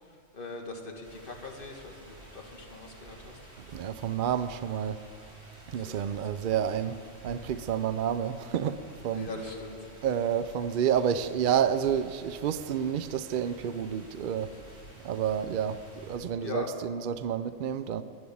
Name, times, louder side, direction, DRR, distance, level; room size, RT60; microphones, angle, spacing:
voice 1, 0.0-3.4 5.8-6.5 9.1-9.9 16.4-16.7, left 3 dB, 40° left, 1.9 m, -41 dB
sound 1, 1.0-16.2, right 1 dB, 50° right, 3.2 m, -51 dB
voice 2, 3.6-5.0 5.7-9.3 10.0-14.6 15.0-18.0, right 8 dB, 70° right, 0.5 m, -29 dB
11.5 x 11.0 x 8.5 m
omnidirectional pair, 1.4 m